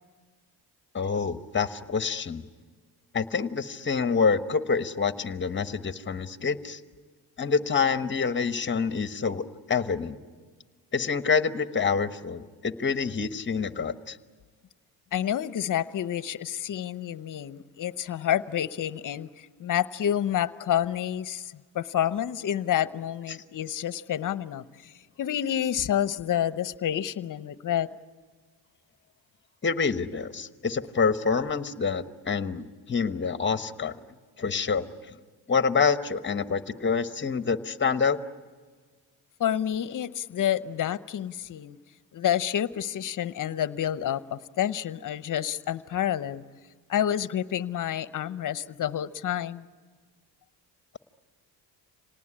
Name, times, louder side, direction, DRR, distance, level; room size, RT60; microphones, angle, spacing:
voice 1, 0.9-2.4 3.1-6.8 7.4-10.2 10.9-14.2 23.3-23.4 29.6-33.9 34.4-35.2 35.5-38.2, left 5 dB, 25° left, 11 dB, 1.1 m, -27 dB
voice 2, 15.1-24.9 25.2-27.9 39.4-41.8 42.1-46.4 46.9-49.7, left 10 dB, 50° left, 15 dB, 0.8 m, -29 dB
26.5 x 19.0 x 9.9 m, 1.5 s
cardioid pair, 95°, 42 cm